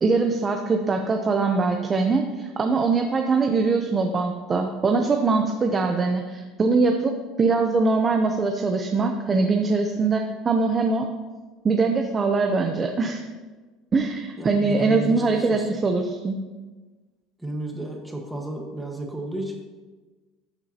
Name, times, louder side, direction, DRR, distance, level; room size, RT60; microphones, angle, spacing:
voice 1, 0.0-11.1 11.6-13.2 13.9-16.4, right 4 dB, 20° right, 4 dB, 0.6 m, -22 dB
voice 2, 14.4-15.7 17.4-19.5, right 1 dB, 5° right, 1 dB, 1.3 m, -33 dB
14.0 x 6.9 x 2.8 m, 1.3 s
cardioid pair, 150°, 0 cm